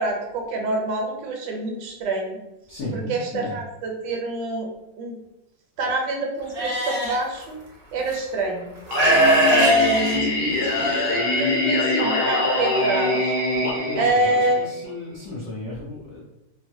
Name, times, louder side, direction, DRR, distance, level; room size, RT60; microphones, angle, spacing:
voice 1, 0.0-2.4 2.9-4.7 5.0-5.2 5.8-7.6 7.9-9.1 9.5-10.4 10.7-13.3 14.0-14.7, right 1 dB, 75° right, 1 dB, 1.2 m, -26 dB
voice 2, 2.7-3.6 13.5-16.2, left 2 dB, 50° left, -7 dB, 0.9 m, -34 dB
Livestock farm animals working animals, 6.6-7.2 8.1-8.2 8.9-10.9, right 1 dB, 55° right, 0.7 m, -20 dB
Singing, 8.9-14.9, left 2 dB, 70° left, 1.2 m, -24 dB
3.2 x 2.1 x 2.6 m, 0.92 s
omnidirectional pair, 1.9 m